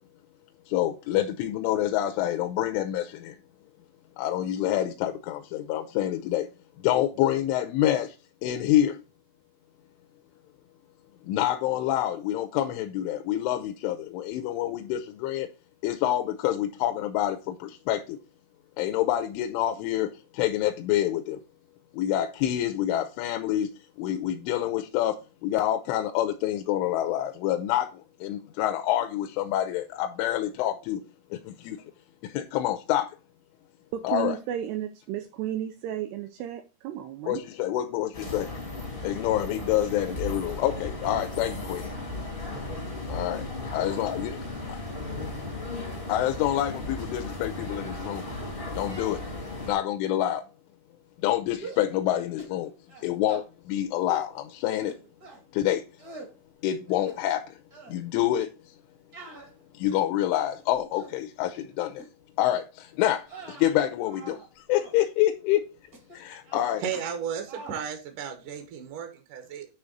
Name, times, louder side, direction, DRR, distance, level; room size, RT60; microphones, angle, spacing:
voice 1, 0.7-3.4 4.2-6.5 6.8-8.2 8.4-9.0 11.3-15.5 15.8-18.2 18.8-20.1 20.3-21.4 21.9-23.7 24.0-31.0 31.3-31.8 32.2-33.2 34.0-34.4 37.2-38.5 39.0-41.9 43.1-43.4 43.7-44.3 46.1-48.2 48.8-49.2 49.7-50.4 51.2-52.7 53.0-54.9 55.5-55.8 56.6-57.6 57.9-58.7 59.7-62.0 62.4-65.6 66.1-66.8, left 12 dB, 85° left, 3.1 m, -27 dB
voice 2, 33.9-37.4, right 11 dB, 85° right, 2.3 m, -33 dB
sound 1, 38.1-49.7, left 2 dB, 55° left, 0.6 m, -35 dB
sound 2, 51.6-51.9 52.4-52.6 52.9-53.5 54.1-54.3 54.9-55.4 56.0-56.3 56.9-57.4 57.7-58.0 59.1-60.2 60.7-61.2 61.9-62.1 62.5-62.7 63.2-64.5 64.7-65.0 65.9-66.2 66.4-67.2 67.5-67.8, right 3 dB, 55° right, 1.0 m, -45 dB
voice 3, 66.8-69.7, right 8 dB, 70° right, 2.0 m, -34 dB
9.4 x 3.5 x 6.5 m
omnidirectional pair, 5.5 m